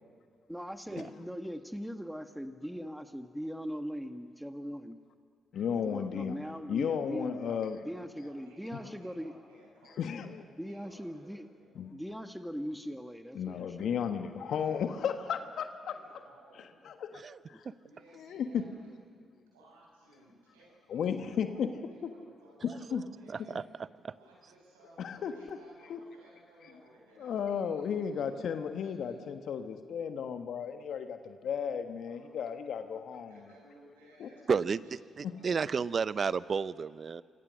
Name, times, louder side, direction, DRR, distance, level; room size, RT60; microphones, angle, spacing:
voice 1, 0.5-5.0 5.7-9.3 10.6-11.5 11.9-13.9 17.5-17.6, equal, ahead, 7 dB, 1.7 m, -40 dB
voice 2, 5.5-6.4 6.7-7.9 8.8-9.0 10.0-10.4 11.7-11.9 13.3-16.0 16.8-17.2 17.5-17.7 18.1-18.6 20.9-21.7 22.9-23.0 25.0-25.6 25.9-26.0 27.2-33.3 34.2-34.3 35.2-35.3, left 7 dB, 65° left, 8 dB, 1.4 m, -34 dB
voice 3, 8.1-11.8 14.3-15.6 15.8-16.8 17.8-23.7 24.1-29.2 31.6-31.7 32.1-32.6 33.0-35.9, right 1 dB, 90° right, -4 dB, 7.9 m, -59 dB
voice 4, 34.5-34.8 35.4-37.2, right 5 dB, 50° right, 17 dB, 0.7 m, -31 dB
28.0 x 24.0 x 6.5 m, 2.1 s
hypercardioid pair, 40°, 0 cm